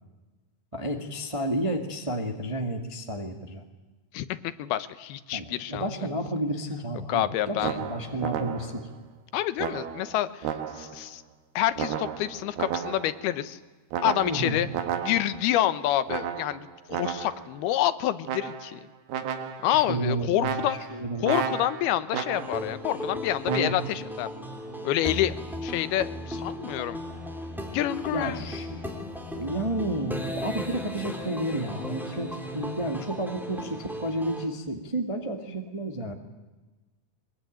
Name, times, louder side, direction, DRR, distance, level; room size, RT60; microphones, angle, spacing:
voice 1, 0.7-3.6 5.3-8.9 14.2-14.6 19.6-21.3 23.4-23.7 28.1-28.8 29.3-36.1, right 1 dB, 20° right, 4 dB, 0.7 m, -31 dB
voice 2, 4.1-5.9 7.1-7.8 9.3-11.2 11.6-13.6 14.0-14.7 15.0-18.8 19.6-20.8 21.2-24.3 24.8-25.4 25.6-27.0 27.7-28.4, left 13 dB, 90° left, 13 dB, 3.0 m, -28 dB
sound 1, 7.6-8.9 9.6-11.1 11.8-13.3 13.9-15.5 16.1-17.5 18.3-18.8 19.1-19.8 20.4-22.7 23.5-23.8, right 8 dB, 85° right, 3.4 m, -33 dB
sound 2, 22.3-34.5, left 1 dB, ahead, 2.0 m, -36 dB
23.0 x 21.5 x 9.2 m, 1.2 s
omnidirectional pair, 4.4 m